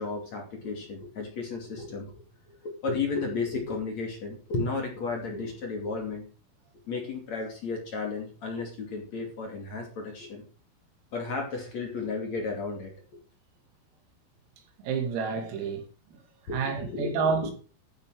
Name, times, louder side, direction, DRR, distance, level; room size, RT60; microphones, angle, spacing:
voice 1, 0.0-2.2 2.6-6.2 6.9-10.4 11.1-12.9 16.5-17.5, left 4 dB, 40° left, 3.1 m, -33 dB
voice 2, 14.8-15.8 16.1-16.2 16.5-17.5, right 5 dB, 90° right, 5.2 m, -29 dB
13.5 x 8.7 x 4.9 m
omnidirectional pair, 5.9 m